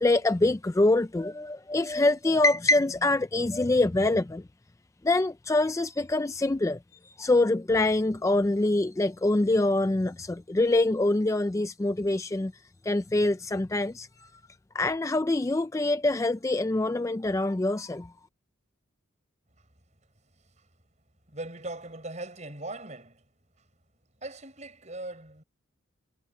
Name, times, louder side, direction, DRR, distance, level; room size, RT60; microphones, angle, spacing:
voice 1, 0.0-4.4 5.0-6.8 7.2-12.5 12.8-14.3 14.7-18.1, left 2 dB, 15° left, 0.3 m, -25 dB
voice 2, 21.3-23.2 24.2-25.4, right 2 dB, 35° right, 7.2 m, -39 dB
head